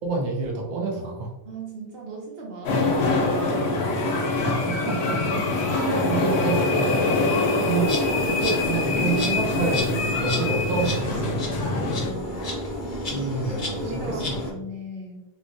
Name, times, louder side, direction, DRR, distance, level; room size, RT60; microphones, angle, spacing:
voice 1, 0.0-1.3 4.4-5.2 5.8-7.2 7.6-11.4 13.1-14.6, right 3 dB, 50° right, -1 dB, 0.7 m, -28 dB
voice 2, 1.5-3.8 11.7-12.5 13.1-13.2 13.7-15.2, right 2 dB, 70° right, -2 dB, 1.0 m, -38 dB
sound 1, 2.6-12.1, left 3 dB, 90° left, 0.9 m, -24 dB
Insect, 7.8-14.5, left 1 dB, 55° left, 0.8 m, -31 dB
3.1 x 2.1 x 2.6 m, 0.96 s
omnidirectional pair, 1.0 m